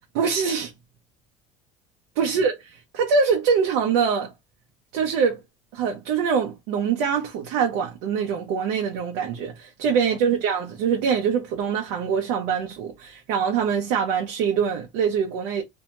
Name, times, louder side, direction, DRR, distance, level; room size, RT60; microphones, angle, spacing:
voice 1, 0.1-0.7 2.2-4.3 4.9-5.4 5.7-15.6, right 6 dB, 85° right, 0.6 m, -24 dB
2.6 x 2.1 x 2.8 m
cardioid pair, 130°, 15 cm